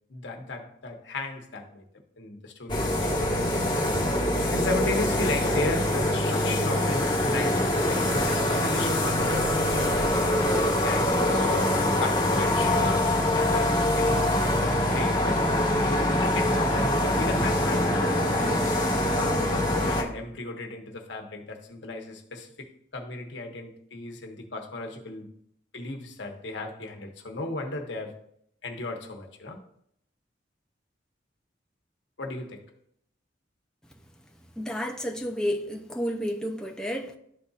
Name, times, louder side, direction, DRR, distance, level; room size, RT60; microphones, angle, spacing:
voice 1, 0.1-1.9 2.2-3.3 4.5-15.2 15.8-18.6 19.2-25.3 25.7-28.2 28.6-29.6 32.2-32.7, left 2 dB, 80° left, 1.0 m, -35 dB
sound 1, 2.7-20.0, left 1 dB, 25° left, 1.4 m, -24 dB
voice 2, 34.6-37.2, equal, 5° left, 0.5 m, -31 dB
12.0 x 4.0 x 2.4 m
head